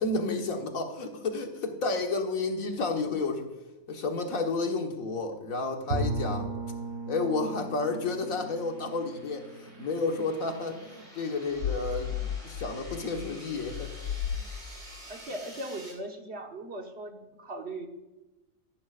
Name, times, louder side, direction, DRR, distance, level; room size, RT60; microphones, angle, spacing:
voice 1, 0.0-3.5 3.9-6.5 7.1-13.9, left 3 dB, 90° left, 4 dB, 1.8 m, -31 dB
Bowed string instrument, 5.9-10.7, right 2 dB, 85° right, 1.4 m, -36 dB
sound 1, 6.9-15.9, right 1 dB, 25° right, 3.5 m, -50 dB
sound 2, 11.6-15.0, left 9 dB, 75° left, 1.0 m, -35 dB
voice 2, 15.1-17.9, right 1 dB, 55° right, 3 dB, 1.6 m, -39 dB
14.0 x 11.5 x 2.5 m, 1.1 s
omnidirectional pair, 1.4 m